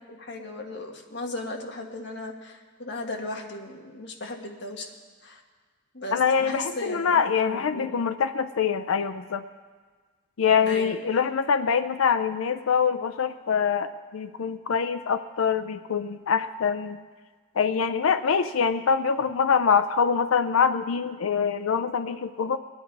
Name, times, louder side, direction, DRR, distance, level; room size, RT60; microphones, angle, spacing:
voice 1, 0.1-4.9 5.2-5.4 5.9-8.0 10.6-11.2, left 2 dB, 55° left, 2 dB, 1.5 m, -36 dB
voice 2, 6.1-9.4 10.4-17.0 17.6-22.6, left 6 dB, 85° left, 9 dB, 0.5 m, -24 dB
20.5 x 9.7 x 4.6 m, 1.5 s
head